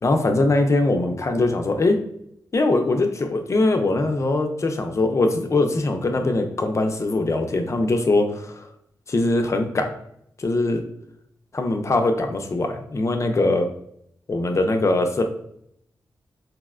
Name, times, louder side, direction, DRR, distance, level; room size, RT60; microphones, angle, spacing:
voice 1, 0.0-2.0 2.5-8.7 9.1-9.9 10.4-10.8 11.5-13.7 14.3-15.2, left 2 dB, 40° left, 5 dB, 0.5 m, -21 dB
4.1 x 2.1 x 2.3 m, 0.72 s
cardioid pair, 60°, 8 cm